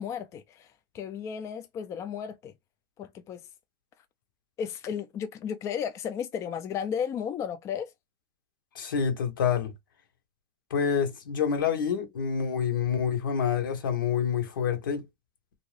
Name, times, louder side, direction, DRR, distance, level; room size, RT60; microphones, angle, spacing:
voice 1, 0.0-2.5 3.0-3.5 4.6-7.9, left 8 dB, 25° left, 0.4 m, -34 dB
voice 2, 8.7-9.7 10.7-15.1, left 7 dB, 80° left, 1.0 m, -27 dB
2.6 x 2.4 x 3.1 m
hypercardioid pair, 120°, 11 cm